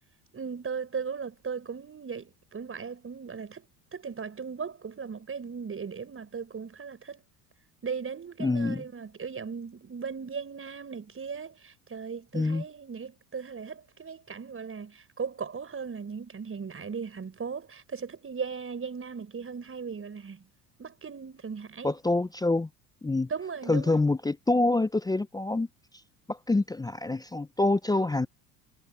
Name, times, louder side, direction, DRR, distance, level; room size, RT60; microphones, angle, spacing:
voice 1, 0.3-7.2 7.8-20.4 20.8-21.9 23.3-24.0, right 6 dB, 30° right, 6.7 m, -37 dB
voice 2, 8.4-8.8 12.3-12.6 21.8-22.7 23.0-23.3 23.7-25.7 26.3-28.3, left 2 dB, 10° left, 0.7 m, -26 dB
hypercardioid pair, 75°, 45 cm